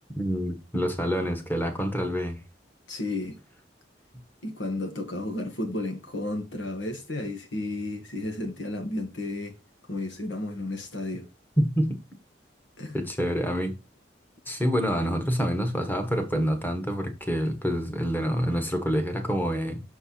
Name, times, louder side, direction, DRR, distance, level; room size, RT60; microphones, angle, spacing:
voice 1, 0.2-2.4 11.6-12.0 12.9-13.7 14.5-19.8, equal, 10° left, 1.2 m, -27 dB
voice 2, 2.9-3.4 4.4-9.5 9.9-11.3 12.8-13.0, left 2 dB, 75° left, 1.8 m, -32 dB
6.6 x 4.5 x 4.2 m
head